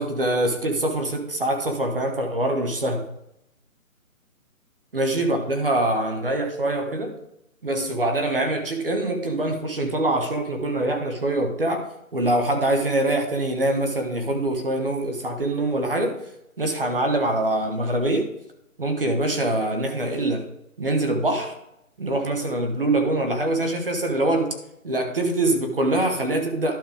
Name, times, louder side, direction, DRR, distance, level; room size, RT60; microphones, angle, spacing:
voice 1, 0.0-3.1 4.9-7.2 7.6-11.9 12.1-16.2 16.6-18.3 18.8-20.5 20.8-21.5 22.0-24.5 24.8-26.8, right 1 dB, 40° right, 4 dB, 1.3 m, -24 dB
12.0 x 5.5 x 3.5 m, 0.80 s
hypercardioid pair, 180°, 43 cm